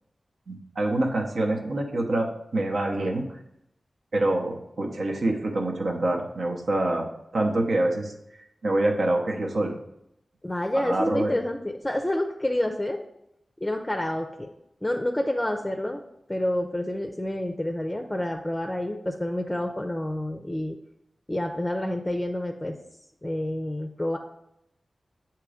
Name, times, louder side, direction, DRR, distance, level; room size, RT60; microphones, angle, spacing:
voice 1, 0.5-3.4 4.1-8.1 8.6-9.8 10.7-11.3, right 1 dB, 75° right, 1 dB, 0.9 m, -26 dB
voice 2, 10.4-13.0 13.6-14.5 14.8-16.0 16.3-20.8 21.3-22.8 23.2-24.2, left 1 dB, 15° left, 3 dB, 0.5 m, -28 dB
7.3 x 3.0 x 4.9 m, 0.80 s
wide cardioid pair, 75°, 0 cm